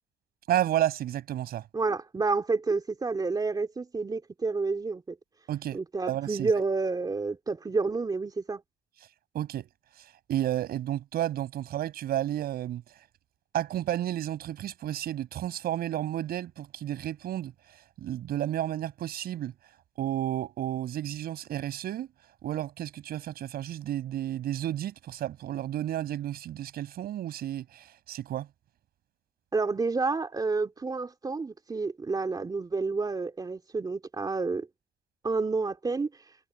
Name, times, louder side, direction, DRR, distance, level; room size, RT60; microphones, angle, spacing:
voice 1, 0.5-1.7 5.5-5.8 6.1-6.5 9.3-9.7 10.0-12.8 13.5-17.5 18.0-19.5 20.0-22.1 22.4-28.5, right 12 dB, 65° right, 6.7 m, -31 dB
voice 2, 1.7-5.2 5.7-8.6 29.5-34.7 35.2-36.1, right 4 dB, 25° right, 2.9 m, -29 dB
cardioid pair, 110°, 17 cm